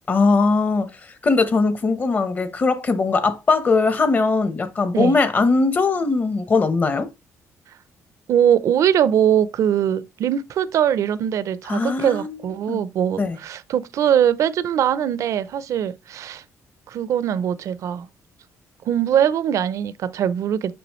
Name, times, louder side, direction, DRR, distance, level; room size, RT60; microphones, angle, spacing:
voice 1, 0.1-0.9 1.2-7.1 11.7-12.4 12.7-12.8 13.2-13.4, left 3 dB, 30° left, 1.0 m, -20 dB
voice 2, 8.3-16.4 16.9-18.1 18.8-20.7, right 9 dB, 65° right, 0.6 m, -21 dB
7.0 x 5.9 x 3.1 m
cardioid pair, 130°, 6 cm